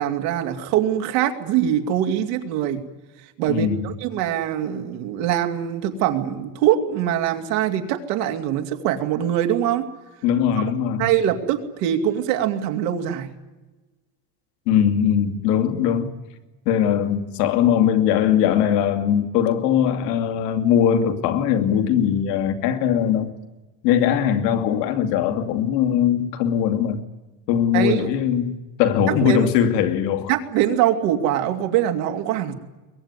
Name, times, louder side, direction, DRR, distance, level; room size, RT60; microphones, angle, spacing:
voice 1, 0.0-2.8 3.4-9.9 10.6-10.7 11.0-13.3 27.7-28.1 29.1-29.5 30.3-32.5, right 11 dB, 85° right, 2.7 m, -23 dB
voice 2, 3.5-3.9 10.2-11.1 14.7-16.1 16.7-23.3 23.8-27.0 27.5-30.3, left 9 dB, 85° left, 2.6 m, -20 dB
22.0 x 20.0 x 9.8 m
cardioid pair, 145°, 47 cm